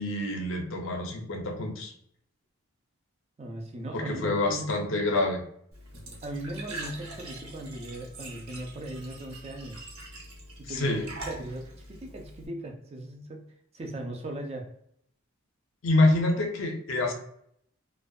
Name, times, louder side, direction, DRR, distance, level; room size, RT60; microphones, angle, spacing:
voice 1, 0.0-1.9 3.9-5.4 10.7-11.0 15.8-17.1, left 2 dB, 60° left, 3 dB, 0.5 m, -26 dB
voice 2, 3.4-4.7 6.2-9.9 10.6-13.5 13.7-14.7, right 1 dB, 30° right, 2 dB, 0.4 m, -38 dB
Glass / Trickle dribble / Fill (with liquid), 5.7-12.5, right 2 dB, 75° right, 0.8 m, -43 dB
2.6 x 2.1 x 2.2 m, 0.69 s
head